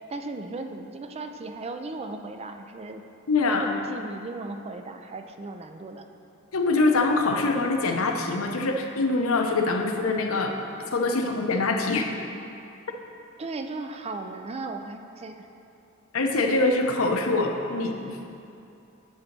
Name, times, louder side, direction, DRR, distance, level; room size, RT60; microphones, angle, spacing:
voice 1, 0.0-3.0 3.5-6.1 13.4-15.5, right 3 dB, 30° right, 6 dB, 0.4 m, -36 dB
voice 2, 3.3-3.7 6.5-10.5 10.9-12.1 16.1-18.3, left 3 dB, 75° left, 3 dB, 0.8 m, -24 dB
9.8 x 4.1 x 5.9 m, 2.7 s
head